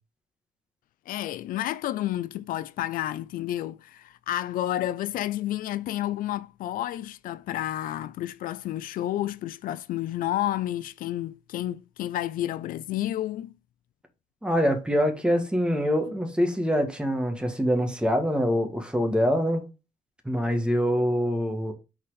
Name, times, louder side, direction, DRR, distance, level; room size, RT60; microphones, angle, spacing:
voice 1, 1.1-13.5, left 13 dB, 75° left, 0.4 m, -30 dB
voice 2, 14.4-19.7 20.2-21.7, equal, 5° right, 1.6 m, -24 dB
5.6 x 4.3 x 4.8 m
cardioid pair, 105°, 15 cm